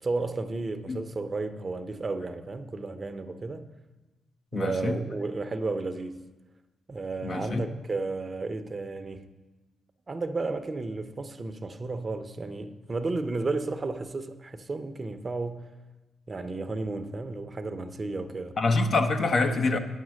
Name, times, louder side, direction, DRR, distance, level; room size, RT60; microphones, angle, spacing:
voice 1, 0.0-3.7 4.5-6.2 6.9-9.3 10.1-15.7 16.3-18.6, right 3 dB, 40° right, 0.8 m, -33 dB
voice 2, 4.5-5.0 7.2-7.6 18.6-19.8, left 3 dB, 60° left, 0.9 m, -25 dB
9.3 x 7.4 x 6.3 m
supercardioid pair, 50°, 0 cm